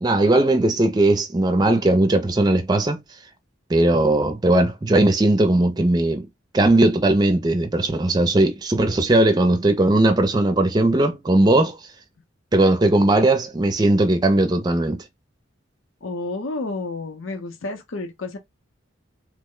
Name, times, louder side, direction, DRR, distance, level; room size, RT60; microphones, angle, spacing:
voice 1, 0.0-3.0 3.7-6.3 6.5-11.8 12.5-15.0, right 2 dB, 20° right, 0.4 m, -18 dB
voice 2, 16.0-18.4, left 3 dB, 80° left, 0.7 m, -30 dB
3.1 x 2.1 x 3.6 m
head